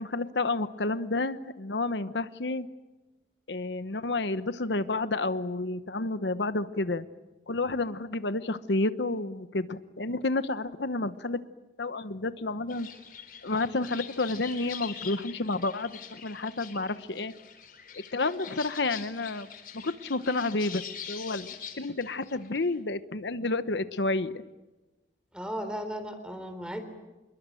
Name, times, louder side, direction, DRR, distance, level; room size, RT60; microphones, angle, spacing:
voice 1, 0.0-2.7 3.5-7.0 7.5-11.4 11.8-12.9 13.4-17.3 18.1-19.5 19.7-24.4, left 2 dB, 75° left, 12 dB, 1.0 m, -30 dB
sound 1, 12.7-22.8, left 8 dB, 50° left, 4.0 m, -44 dB
voice 2, 25.3-26.8, equal, 5° right, 9 dB, 3.7 m, -35 dB
27.5 x 22.0 x 9.1 m, 1.1 s
head